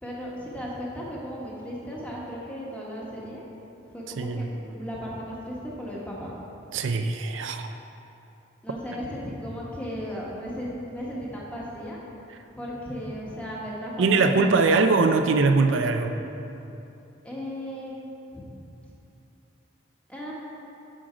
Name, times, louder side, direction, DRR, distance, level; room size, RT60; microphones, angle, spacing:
voice 1, 0.0-3.4 3.9-6.3 8.6-12.0 12.5-14.9 17.2-17.9 18.3-18.5 20.1-20.3, equal, 5° left, -5 dB, 1.2 m, -36 dB
voice 2, 4.2-4.5 6.7-7.7 14.0-16.2, right 3 dB, 80° right, 7 dB, 0.4 m, -22 dB
7.7 x 6.3 x 5.0 m, 2.8 s
head